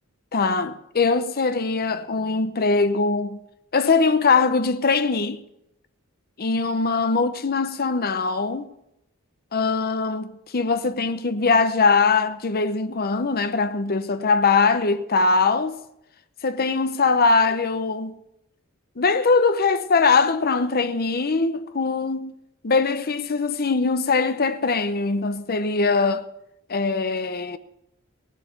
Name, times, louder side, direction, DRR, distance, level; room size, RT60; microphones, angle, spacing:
voice 1, 0.3-3.4 3.7-5.4 6.4-8.7 9.5-15.8 16.4-18.2 19.0-22.4 22.6-26.3 26.7-27.6, left 4 dB, 45° left, 0.8 m, -21 dB
17.0 x 7.4 x 8.2 m
head